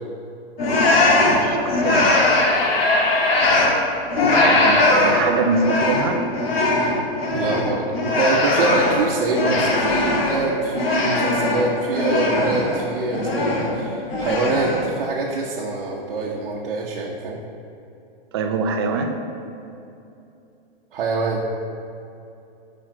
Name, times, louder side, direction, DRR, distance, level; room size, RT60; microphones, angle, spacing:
sound 1, 0.6-3.8 4.1-10.4 10.7-12.8 13.1-13.8 14.1-14.9, left 2 dB, 80° left, 1.5 m, -19 dB
voice 1, 1.3-2.1 4.4-6.2 18.3-19.1, right 4 dB, 25° right, 4 dB, 0.4 m, -24 dB
voice 2, 7.3-17.4 20.9-21.4, right 3 dB, 60° right, -3 dB, 0.9 m, -25 dB
7.4 x 5.0 x 4.4 m, 2.7 s
hypercardioid pair, 165°, 30 cm